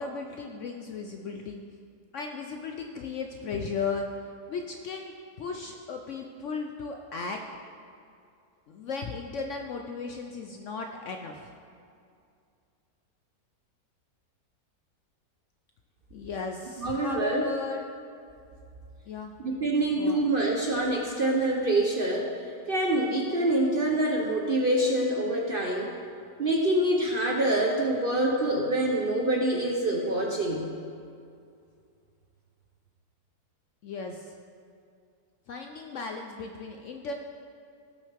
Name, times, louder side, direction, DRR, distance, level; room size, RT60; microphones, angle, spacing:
voice 1, 0.0-1.6 2.1-4.1 4.5-7.4 8.7-11.5 16.1-17.8 19.1-19.3 20.0-20.2 33.8-34.3 35.5-37.1, left 4 dB, 65° left, 3 dB, 0.7 m, -36 dB
voice 2, 16.8-17.5 19.4-22.3 22.7-25.9 26.4-30.7, right 1 dB, 50° right, 0 dB, 0.7 m, -26 dB
16.5 x 6.2 x 3.4 m, 2.4 s
omnidirectional pair, 1.7 m